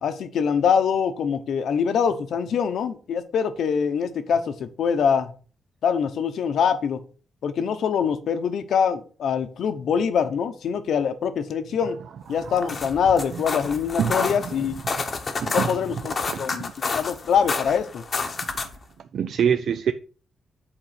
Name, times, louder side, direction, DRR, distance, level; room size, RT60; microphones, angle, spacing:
voice 1, 0.0-5.3 5.8-7.0 7.4-12.0 12.3-14.8 15.5-18.0, left 7 dB, 70° left, 0.9 m, -24 dB
voice 2, 11.8-12.9 13.3-13.6 14.0-14.7 15.4-16.0 16.3-16.4 19.1-19.9, right 8 dB, 60° right, 0.4 m, -27 dB
sound 1, 12.4-18.8, left 4 dB, 30° left, 1.0 m, -30 dB
8.0 x 4.0 x 5.8 m
wide cardioid pair, 180°, 0 cm